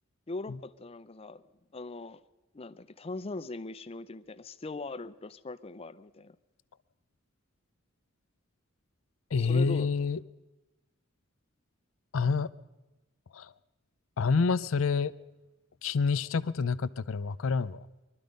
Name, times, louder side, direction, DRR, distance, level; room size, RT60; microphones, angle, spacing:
voice 1, 0.3-1.4 1.7-2.2 2.5-6.4 9.4-9.9, left 2 dB, 30° left, 13 dB, 0.5 m, -40 dB
voice 2, 9.3-10.2 12.1-12.5 13.3-13.5 14.2-15.1 15.8-17.8, left 5 dB, 75° left, 16 dB, 0.5 m, -27 dB
22.5 x 12.5 x 5.2 m, 1.1 s
head